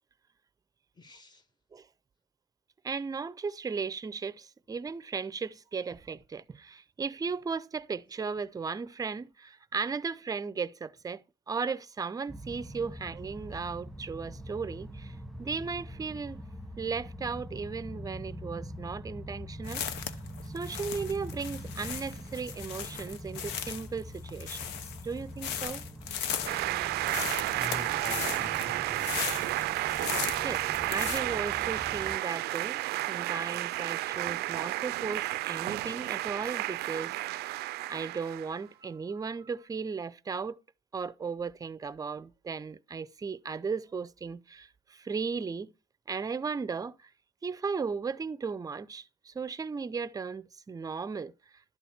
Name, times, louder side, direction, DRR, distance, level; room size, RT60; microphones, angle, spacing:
voice 1, 1.0-1.4 27.5-29.5, left 1 dB, 25° left, 1.4 m, -45 dB
voice 2, 2.8-16.4 16.8-20.1 20.5-24.7 25.0-25.8 29.4-29.5 30.4-32.8 33.1-37.2 37.5-40.6 40.9-45.7 46.1-47.1 47.4-51.3, right 5 dB, 20° right, 0.5 m, -36 dB
sound 1, 12.3-32.2, equal, ahead, 1.1 m, -44 dB
sound 2, 19.6-31.2, left 9 dB, 90° left, 1.0 m, -37 dB
sound 3, 26.5-38.6, right 18 dB, 75° right, 0.4 m, -32 dB
12.0 x 4.2 x 7.3 m
cardioid pair, 110°, 17 cm